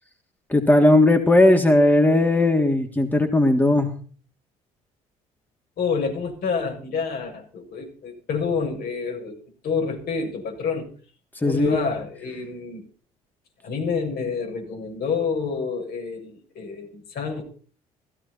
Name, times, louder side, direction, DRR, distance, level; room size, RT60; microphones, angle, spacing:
voice 1, 0.5-3.9 11.4-11.8, left 1 dB, 10° left, 4 dB, 3.3 m, -17 dB
voice 2, 5.8-9.3 9.6-10.9 11.4-12.8 13.6-17.4, left 5 dB, 60° left, 2 dB, 7.9 m, -28 dB
16.5 x 16.0 x 4.4 m, 0.42 s
hypercardioid pair, 60°, 18 cm